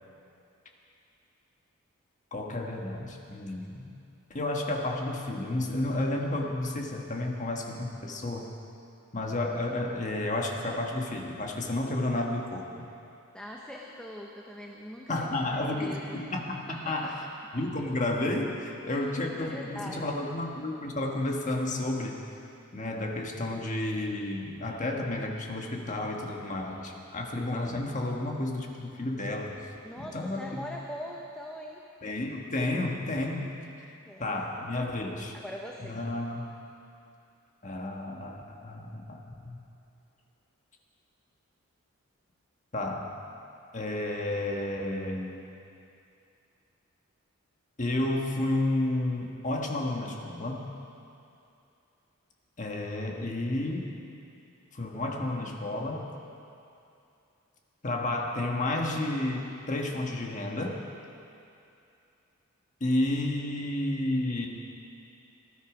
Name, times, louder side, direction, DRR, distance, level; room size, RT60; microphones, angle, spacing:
voice 1, 2.3-3.9 4.3-8.5 9.1-12.9 15.1-17.2 17.5-22.1 22.7-29.7 30.0-30.6 32.0-33.5 34.2-35.3 35.8-36.5 37.6-39.6 42.7-43.1 43.7-45.4 47.8-50.7 52.6-53.9 54.7-56.1 57.8-60.8 62.8-64.5, left 1 dB, 35° left, 1 dB, 1.5 m, -31 dB
voice 2, 13.3-16.3 16.7-17.6 18.9-20.1 23.5-23.7 29.8-31.8 34.0-34.5 35.3-36.1, left 1 dB, 5° left, -1 dB, 0.9 m, -42 dB
19.0 x 12.5 x 5.0 m, 2.6 s
head